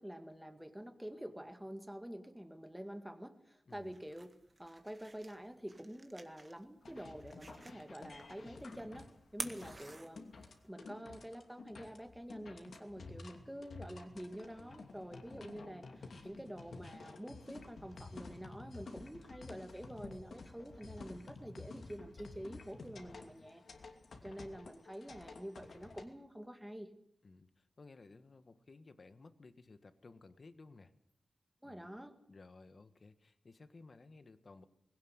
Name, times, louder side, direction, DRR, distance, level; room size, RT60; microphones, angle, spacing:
voice 1, 0.0-4.3 4.6-10.3 10.6-23.6 24.2-26.9 31.6-32.1, equal, 5° right, 7 dB, 2.0 m, -48 dB
voice 2, 3.7-4.0 9.4-9.7 23.0-23.5 24.2-24.4 27.2-30.9 31.6-31.9 32.3-34.7, left 3 dB, 40° left, 11 dB, 1.5 m, -58 dB
sound 1, 3.7-10.7, right 2 dB, 25° right, 1.8 m, -51 dB
sound 2, 6.8-26.0, left 3 dB, 60° left, 2.7 m, -52 dB
21.0 x 17.5 x 8.1 m, 0.67 s
wide cardioid pair, 155°, 0 cm